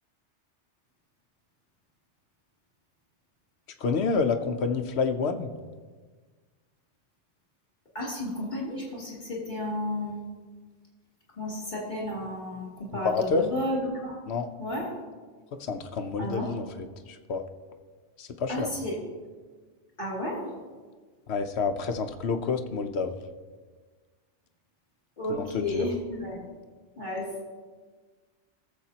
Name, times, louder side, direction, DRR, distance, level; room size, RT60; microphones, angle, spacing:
voice 1, 3.8-5.5 13.0-13.5 14.3-14.5 15.6-16.6 17.3-17.4 18.2-18.7 21.3-23.2 25.3-25.9, left 4 dB, 65° left, 7 dB, 1.0 m, -28 dB
voice 2, 7.9-10.2 11.4-14.2 14.6-14.9 16.2-16.5 18.5-19.0 20.0-20.5 25.2-26.4 27.0-27.3, left 1 dB, 40° left, -5 dB, 3.0 m, -32 dB
19.5 x 7.4 x 2.9 m, 1.4 s
omnidirectional pair, 1.2 m